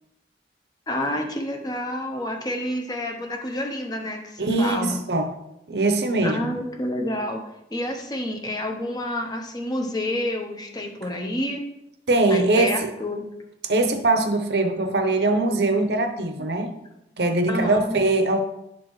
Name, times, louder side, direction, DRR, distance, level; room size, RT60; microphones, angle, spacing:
voice 1, 0.9-5.0 6.2-7.4 7.7-11.6 12.3-13.3 17.5-18.0, left 1 dB, 20° left, 2 dB, 0.9 m, -28 dB
voice 2, 4.4-5.3 5.7-6.5 12.1-12.9 13.7-16.7 17.2-18.4, right 2 dB, 70° right, 6 dB, 0.8 m, -22 dB
11.0 x 4.4 x 3.1 m, 0.84 s
head